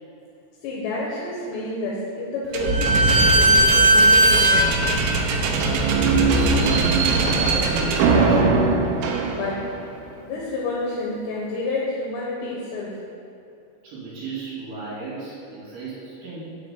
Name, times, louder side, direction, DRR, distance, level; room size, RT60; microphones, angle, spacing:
voice 1, 0.6-4.5 9.2-9.6 10.2-12.9, left 2 dB, 70° left, -4 dB, 2.9 m, -29 dB
Slam / Squeak, 2.5-9.8, right 2 dB, 80° right, 2.8 m, -18 dB
voice 2, 5.7-8.6 13.8-16.6, right 3 dB, 60° right, -8 dB, 4.0 m, -33 dB
7.3 x 6.6 x 7.0 m, 2.7 s
omnidirectional pair, 5.8 m